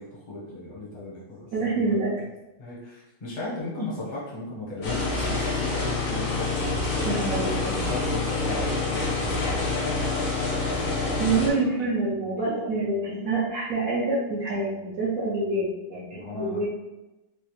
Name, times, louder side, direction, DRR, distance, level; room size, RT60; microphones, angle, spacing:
voice 1, 0.0-2.0 2.6-7.1 7.4-10.2 16.1-16.6, left 2 dB, 35° left, -6 dB, 0.7 m, -37 dB
voice 2, 1.5-2.1 7.1-7.8 11.2-16.7, right 3 dB, 65° right, -7 dB, 0.9 m, -27 dB
sound 1, 4.8-11.5, left 3 dB, 80° left, 2.0 m, -27 dB
4.9 x 2.1 x 3.1 m, 1.0 s
omnidirectional pair, 2.3 m